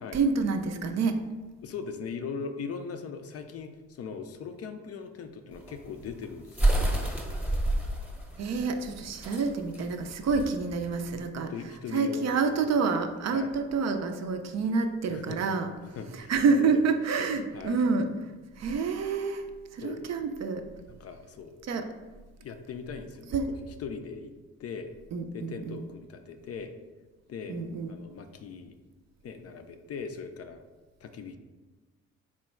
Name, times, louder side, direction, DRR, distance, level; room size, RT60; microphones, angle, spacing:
voice 1, 0.1-1.2 8.4-11.5 11.9-15.7 16.1-18.1 18.6-20.7 21.6-21.9 23.3-23.5 25.1-25.9 27.5-27.9, right 4 dB, 45° right, 6 dB, 0.5 m, -28 dB
voice 2, 1.6-7.5 11.5-12.3 12.6-12.8 13.3-13.5 15.1-15.4 15.9-16.7 17.5-17.8 19.8-20.1 20.9-21.7 22.4-23.4 23.8-24.3 24.6-24.9 25.3-26.8 27.3-27.6 27.9-28.7 29.2-30.6 31.0-31.4, left 5 dB, 40° left, 7 dB, 0.4 m, -40 dB
sound 1, 5.5-11.1, right 1 dB, 5° right, 0.9 m, -29 dB
3.7 x 2.1 x 4.3 m, 1.3 s
hypercardioid pair, 45°, 37 cm